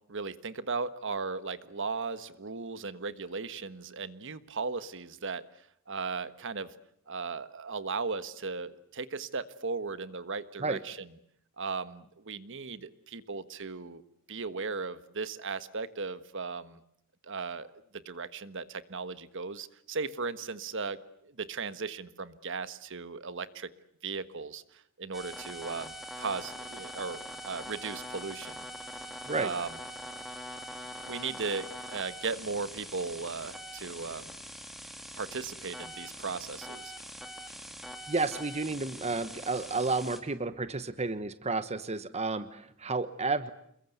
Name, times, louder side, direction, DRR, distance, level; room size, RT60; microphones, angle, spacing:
voice 1, 0.1-5.4 5.9-6.7 7.1-11.0 11.6-14.0 14.3-16.8 17.2-17.7 17.9-21.0 21.4-23.7 24.0-28.6 29.4-29.7 30.5-30.6 31.0-34.3 35.1-36.9, right 4 dB, 60° right, 13 dB, 1.4 m, -37 dB
sound 1, 25.1-40.2, equal, ahead, 2.9 m, -43 dB
voice 2, 38.1-43.5, right 3 dB, 30° right, 12 dB, 1.1 m, -31 dB
28.5 x 22.5 x 8.1 m, 0.71 s
head